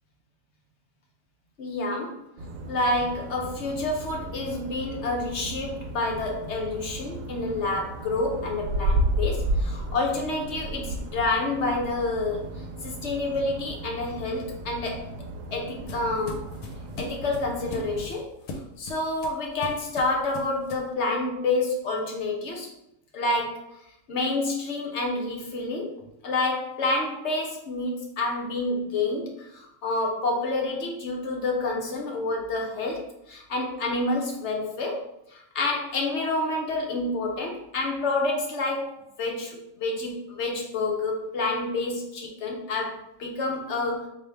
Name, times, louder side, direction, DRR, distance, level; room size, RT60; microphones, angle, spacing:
voice 1, 1.6-2.2 2.7-12.5 12.8-15.0 15.5-16.4 17.0-18.4 18.8-22.7 23.1-23.6 24.1-26.0 26.2-35.0 35.3-44.1, left 2 dB, 55° left, -1 dB, 1.0 m, -28 dB
sound 1, 2.4-18.1, right 1 dB, 70° right, 0.9 m, -33 dB
sound 2, 14.9-20.9, left 2 dB, 85° left, 1.1 m, -41 dB
4.1 x 2.6 x 3.3 m, 0.83 s
omnidirectional pair, 1.5 m